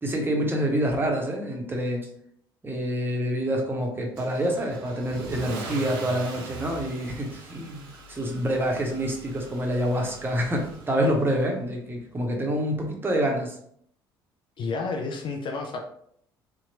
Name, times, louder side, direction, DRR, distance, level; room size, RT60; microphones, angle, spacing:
voice 1, 0.0-2.1 2.6-13.6, equal, 15° right, 1 dB, 0.8 m, -27 dB
Car / Engine starting / Accelerating revving vroom, 4.2-11.3, right 4 dB, 70° right, 0.5 m, -41 dB
voice 2, 14.6-15.8, left 4 dB, 40° left, 3 dB, 0.4 m, -30 dB
2.7 x 2.1 x 2.8 m, 0.66 s
figure-of-eight pair, 55°, 13 cm